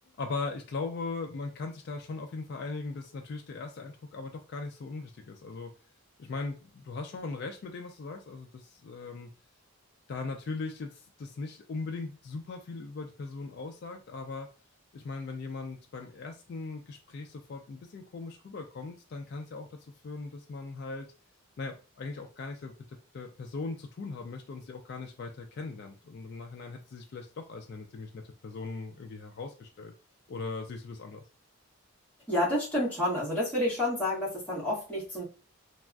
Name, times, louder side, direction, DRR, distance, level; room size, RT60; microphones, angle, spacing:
voice 1, 0.2-5.7 6.2-9.3 10.1-14.5 14.9-19.8 20.0-21.1 21.6-29.9 30.3-31.2, left 3 dB, 50° left, 3 dB, 0.3 m, -39 dB
voice 2, 32.3-35.2, left 1 dB, 10° left, -9 dB, 1.4 m, -29 dB
3.3 x 2.4 x 2.2 m, 0.34 s
head